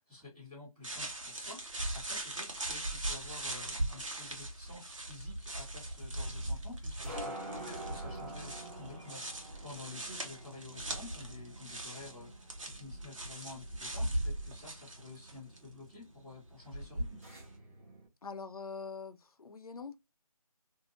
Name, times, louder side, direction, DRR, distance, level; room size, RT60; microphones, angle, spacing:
voice 1, 0.0-17.2, left 3 dB, 5° right, 1.4 m, -51 dB
sound 1, 0.8-15.7 16.7-17.4, right 1 dB, 55° right, 1.0 m, -39 dB
sound 2, 4.6-18.1, right 1 dB, 25° right, 0.7 m, -49 dB
voice 2, 18.2-20.0, left 5 dB, 75° left, 0.6 m, -43 dB
2.8 x 2.6 x 2.5 m
figure-of-eight pair, 170°, 19 cm